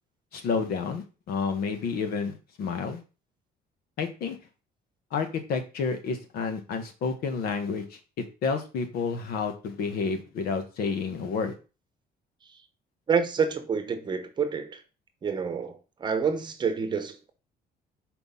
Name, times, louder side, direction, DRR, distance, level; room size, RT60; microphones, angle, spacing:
voice 1, 0.3-3.0 4.0-4.4 5.1-11.5, left 5 dB, 65° left, 1.5 m, -30 dB
voice 2, 13.1-14.8 15.2-17.3, right 6 dB, 25° right, 1.0 m, -28 dB
6.2 x 4.6 x 5.6 m
cardioid pair, 165°, 17 cm